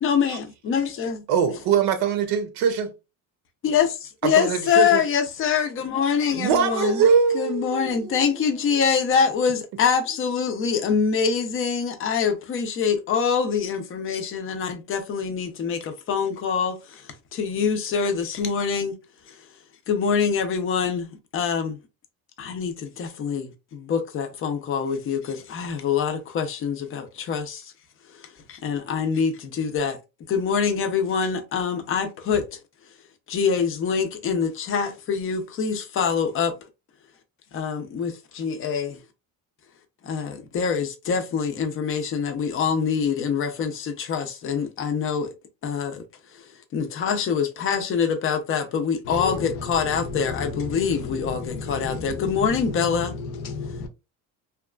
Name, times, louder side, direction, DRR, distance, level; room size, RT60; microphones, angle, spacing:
voice 1, 0.0-1.2 3.6-7.0 7.3-19.0 19.3-19.4 19.9-21.1 21.3-21.8 22.4-27.7 28.1-30.0 30.3-32.6 33.3-36.5 37.5-39.0 40.0-45.3 45.6-46.0 46.3-46.5 46.7-53.1, left 6 dB, 35° left, 0.5 m, -25 dB
voice 2, 1.3-2.9 4.2-5.0 6.3-8.2, right 6 dB, 75° right, 0.7 m, -22 dB
voice 3, 49.0-53.9, left 4 dB, 70° left, 0.7 m, -33 dB
2.8 x 2.3 x 2.3 m
cardioid pair, 145°, 40 cm